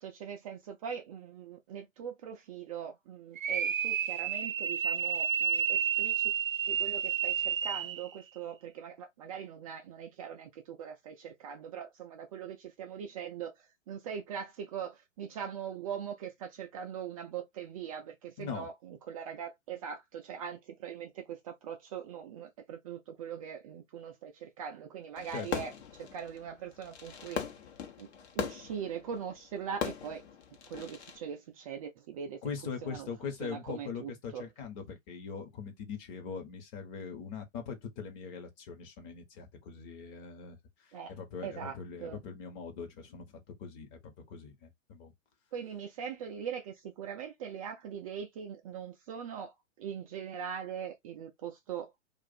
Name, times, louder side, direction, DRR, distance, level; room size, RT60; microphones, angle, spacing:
voice 1, 0.0-6.3 6.7-25.7 26.1-27.5 28.0-28.1 28.3-30.2 30.7-32.4 32.8-33.1 33.4-34.4 40.9-41.1 41.4-42.2 45.5-51.9, right 8 dB, 30° right, 0.4 m, -41 dB
sound 1, 3.3-8.1, right 8 dB, 85° right, 0.5 m, -30 dB
Fireworks, 25.2-31.2, left 7 dB, 55° left, 1.0 m, -40 dB
voice 2, 32.4-40.6 41.1-45.1, left 6 dB, 35° left, 1.1 m, -41 dB
2.5 x 2.5 x 4.1 m
figure-of-eight pair, 115°, 38 cm